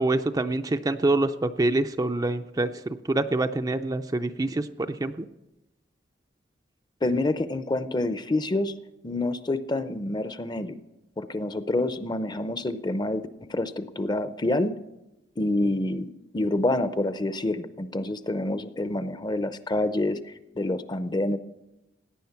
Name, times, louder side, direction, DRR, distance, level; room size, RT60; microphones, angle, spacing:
voice 1, 0.0-2.7 3.1-5.3, right 2 dB, 20° right, 8 dB, 0.4 m, -25 dB
voice 2, 7.0-8.7 9.0-10.8 11.2-14.7 15.4-20.2 20.6-21.4, left 2 dB, 25° left, 12 dB, 0.6 m, -27 dB
17.5 x 10.0 x 5.8 m, 0.95 s
head